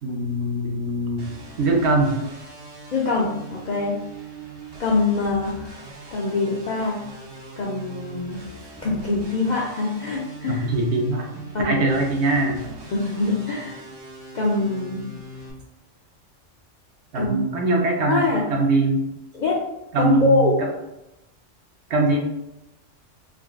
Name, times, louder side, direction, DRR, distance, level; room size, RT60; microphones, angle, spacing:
voice 1, 0.0-1.3 1.6-2.2 10.5-12.7 17.1-19.0 19.9-20.7 21.9-22.2, right 2 dB, 65° right, 1 dB, 0.8 m, -22 dB
sound 1, 1.2-15.5, right 2 dB, 45° right, 0.3 m, -41 dB
voice 2, 2.9-4.0 4.8-5.8 6.1-7.0 7.6-8.4 8.8-10.7 11.5-11.9 12.9-13.8 14.3-15.0 17.1-17.4 18.1-18.4 19.3-19.6 20.0-20.6, left 3 dB, 65° left, -3 dB, 0.4 m, -23 dB
3.7 x 2.3 x 2.3 m, 0.90 s
omnidirectional pair, 1.3 m